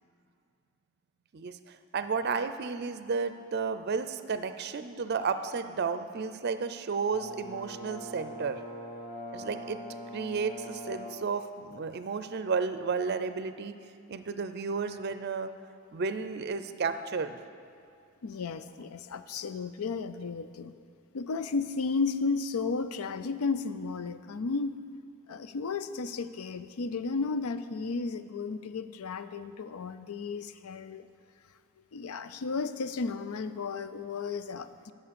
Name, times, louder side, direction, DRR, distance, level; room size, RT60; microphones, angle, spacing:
voice 1, 1.3-8.6 9.3-9.8 10.1-13.7 14.1-15.5 15.9-17.4, right 5 dB, 50° right, 11 dB, 0.5 m, -32 dB
Brass instrument, 7.1-11.3, equal, 30° left, 1.1 m, -42 dB
voice 2, 18.2-20.7 21.1-24.8 25.3-31.1 31.9-34.9, left 4 dB, 90° left, 12 dB, 0.5 m, -33 dB
11.0 x 6.9 x 6.9 m, 2.4 s
head